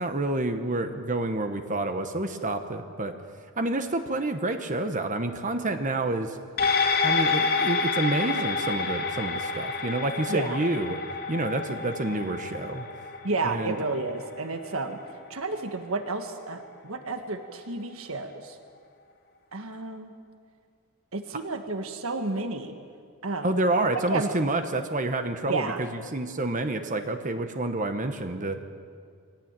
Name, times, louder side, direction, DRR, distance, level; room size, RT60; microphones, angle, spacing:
voice 1, 0.0-3.2 3.6-6.4 7.0-11.0 11.3-12.9 13.4-13.8 23.4-28.6, right 2 dB, 35° right, 7 dB, 1.2 m, -28 dB
sound 1, 6.6-15.3 15.7-15.8, left 4 dB, 45° left, 2.4 m, -29 dB
voice 2, 13.2-15.0 15.3-18.6 19.5-20.1 21.1-22.7 23.2-23.5 23.8-24.3 25.5-25.8, right 3 dB, 65° right, 6 dB, 1.7 m, -31 dB
23.0 x 17.5 x 9.0 m, 2.1 s
head